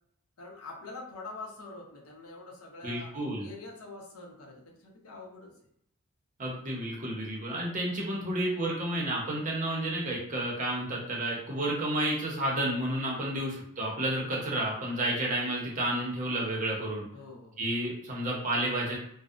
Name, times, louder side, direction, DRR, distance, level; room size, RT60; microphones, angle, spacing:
voice 1, 0.4-3.1 3.4-5.5 13.1-13.4 17.1-17.7, left 3 dB, 80° left, -1 dB, 0.7 m, -45 dB
voice 2, 2.8-3.5 6.4-17.1 17.6-19.0, right 1 dB, 35° right, -3 dB, 0.6 m, -31 dB
2.6 x 2.0 x 2.4 m, 0.71 s
head